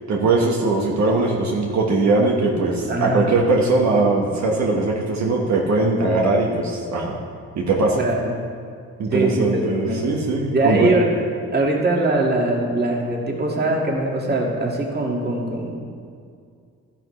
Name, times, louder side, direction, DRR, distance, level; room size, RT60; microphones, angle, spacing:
voice 1, 0.1-7.2 7.6-8.0 9.0-10.9, right 3 dB, 65° right, -2 dB, 1.4 m, -20 dB
voice 2, 2.9-3.3 8.0-8.3 9.1-10.0 10.5-11.2 11.5-15.8, right 2 dB, 35° right, -1 dB, 2.0 m, -22 dB
12.5 x 10.5 x 3.2 m, 2.2 s
cardioid pair, 90°, 30 cm